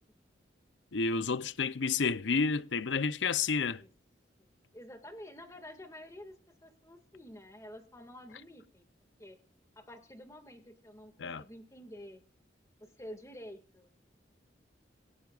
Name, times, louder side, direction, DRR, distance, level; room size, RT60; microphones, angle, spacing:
voice 1, 0.9-3.8 11.2-11.4, left 5 dB, 75° left, 0.6 m, -30 dB
voice 2, 4.7-8.9 9.2-9.4 9.8-12.2 12.8-13.9, equal, 15° left, 2.0 m, -49 dB
27.5 x 12.0 x 2.4 m
head